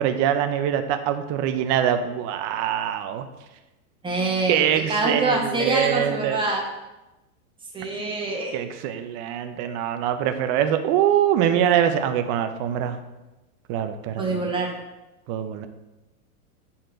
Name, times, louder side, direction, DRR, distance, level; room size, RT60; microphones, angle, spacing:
voice 1, 0.0-3.3 4.5-6.4 8.5-13.0 13.7-14.4 15.3-15.7, right 10 dB, 35° right, 8 dB, 0.6 m, -23 dB
voice 2, 4.0-6.6 7.7-8.5 14.2-14.7, right 3 dB, 10° right, -2 dB, 1.4 m, -25 dB
8.4 x 4.3 x 3.8 m, 1.0 s
supercardioid pair, 135°, 45 cm